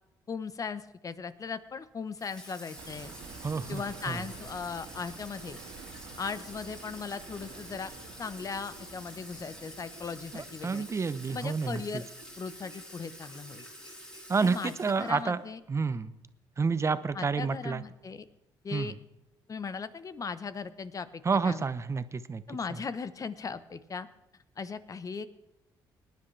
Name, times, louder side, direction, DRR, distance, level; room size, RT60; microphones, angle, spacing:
voice 1, 0.3-3.1 3.7-5.6 6.2-7.9 8.2-10.9 11.3-12.0 12.4-13.6 14.4-14.7 15.0-15.6 17.1-18.2 18.6-18.9 19.5-21.6 22.5-24.1 24.6-25.3, left 5 dB, 40° left, 13 dB, 0.9 m, -38 dB
Water tap faucet / Sink (filling or washing), 2.2-15.3, equal, 10° left, 2.7 m, -48 dB
sound 1, 2.8-15.4, right 1 dB, 65° left, 5.1 m, -56 dB
sound 2, 2.8-12.8 13.1-13.2, right 5 dB, 80° right, 1.8 m, -50 dB
voice 2, 3.4-4.2 10.3-12.0 14.3-15.4 15.7-16.1 16.6-17.8 18.7-18.9 21.2-22.4 22.7-22.8, right 5 dB, 30° right, 14 dB, 0.7 m, -30 dB
20.0 x 10.5 x 3.3 m, 0.90 s
supercardioid pair, 70°, 9 cm